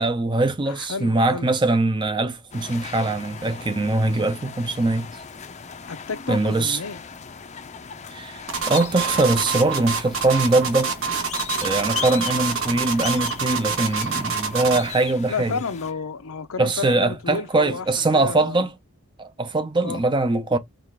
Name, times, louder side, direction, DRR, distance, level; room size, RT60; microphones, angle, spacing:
voice 1, 0.0-5.1 6.3-6.8 8.1-10.9 11.6-15.6 16.6-18.7 19.2-20.6, right 2 dB, 20° right, 0.5 m, -22 dB
voice 2, 0.7-1.5 5.9-7.0 15.3-18.6 19.8-20.0, left 5 dB, 75° left, 0.6 m, -31 dB
sound 1, 2.5-15.9, left 7 dB, 30° left, 0.5 m, -38 dB
sound 2, 8.5-14.9, right 5 dB, 65° right, 1.2 m, -26 dB
4.8 x 2.4 x 3.6 m
head